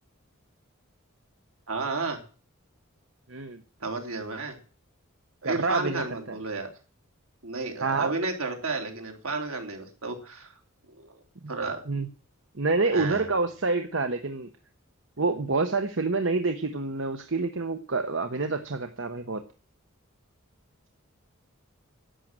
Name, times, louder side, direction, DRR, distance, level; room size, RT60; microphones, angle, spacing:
voice 1, 1.7-2.2 3.8-4.6 5.4-6.7 7.4-10.5 10.9-11.2 11.5-11.8 12.9-13.3, right 3 dB, 80° right, 3 dB, 3.6 m, -32 dB
voice 2, 5.4-6.0 7.8-8.1 11.4-11.5 11.9-12.1 12.6-14.5 15.2-19.4, right 3 dB, 65° right, 7 dB, 1.1 m, -27 dB
11.5 x 9.3 x 7.6 m, 0.38 s
head